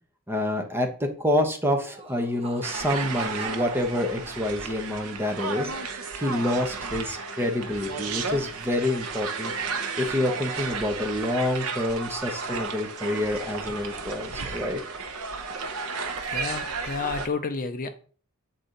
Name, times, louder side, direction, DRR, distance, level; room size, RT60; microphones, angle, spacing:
voice 1, 0.3-5.7 6.1-9.5 10.0-14.8, left 1 dB, 10° right, 3 dB, 1.0 m, -27 dB
Laughter, 1.8-4.9, right 4 dB, 30° right, 1.1 m, -41 dB
sound 1, 2.6-17.3, right 4 dB, 75° right, 0.9 m, -33 dB
voice 2, 16.3-17.9, left 4 dB, 40° left, 9 dB, 0.5 m, -30 dB
8.2 x 4.2 x 3.9 m, 0.42 s
head